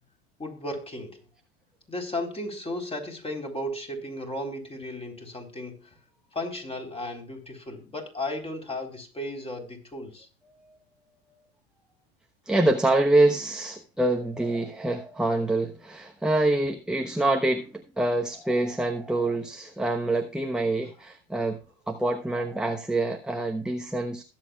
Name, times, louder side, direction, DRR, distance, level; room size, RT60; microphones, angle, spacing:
voice 1, 0.4-1.2 1.9-5.8 6.3-10.3, left 1 dB, 15° left, 4.0 m, -35 dB
voice 2, 12.5-21.6 21.9-24.2, right 2 dB, ahead, 1.1 m, -25 dB
21.0 x 7.6 x 2.4 m
hypercardioid pair, 90°, 32 cm